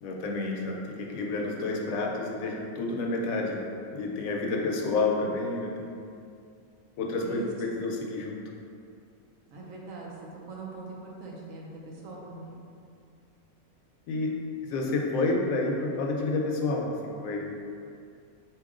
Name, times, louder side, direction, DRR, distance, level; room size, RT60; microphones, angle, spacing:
voice 1, 0.0-6.0 7.0-8.4 14.1-14.3 14.7-17.5, left 3 dB, 75° left, 0 dB, 1.0 m, -29 dB
voice 2, 9.5-10.1 10.5-12.6, right 3 dB, 70° right, -2 dB, 1.1 m, -42 dB
4.2 x 2.9 x 3.7 m, 2.4 s
omnidirectional pair, 1.5 m